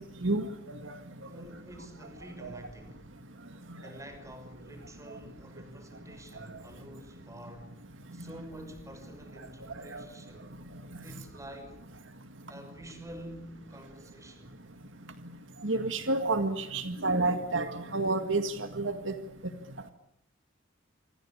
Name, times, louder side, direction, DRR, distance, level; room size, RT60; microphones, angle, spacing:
voice 1, 1.2-3.0 3.7-7.8 8.1-10.5 11.0-11.8 12.5-14.6, equal, 15° right, 6.1 m, -48 dB
voice 2, 15.6-19.1, right 2 dB, 70° right, 2.0 m, -29 dB
26.5 x 26.0 x 8.6 m
head